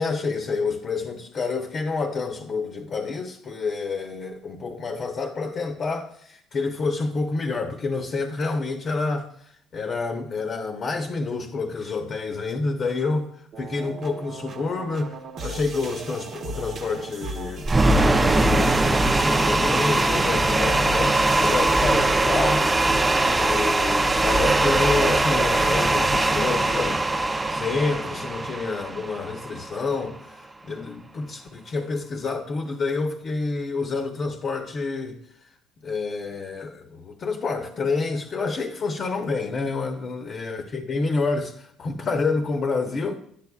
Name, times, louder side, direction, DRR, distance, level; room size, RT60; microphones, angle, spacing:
voice 1, 0.0-9.3 9.7-13.3 13.6-15.2 15.4-22.6 23.2-35.2 35.8-43.2, left 4 dB, 45° left, 0.9 m, -28 dB
sound 1, 13.5-22.8, right 3 dB, 55° right, 1.0 m, -37 dB
sound 2, 17.6-29.8, right 2 dB, 20° right, 0.6 m, -21 dB
10.0 x 8.4 x 2.3 m
supercardioid pair, 85°, 0 cm